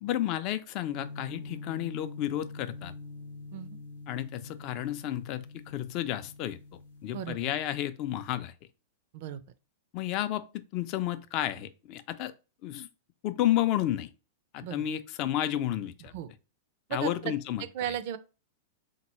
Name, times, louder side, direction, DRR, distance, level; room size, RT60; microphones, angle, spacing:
voice 1, 0.0-2.9 4.1-6.6 7.0-8.5 9.9-10.4 10.7-12.3 12.6-12.9 13.2-14.1 14.5-16.1 16.9-18.0, left 12 dB, 45° left, 0.4 m, -31 dB
sound 1, 0.9-7.2, left 3 dB, 85° left, 0.7 m, -45 dB
voice 2, 7.1-7.5 9.1-9.4 14.6-14.8 16.1-16.3 16.9-17.3 17.7-18.2, right 10 dB, 55° right, 0.4 m, -35 dB
3.8 x 2.2 x 3.0 m
hypercardioid pair, 105°, 0 cm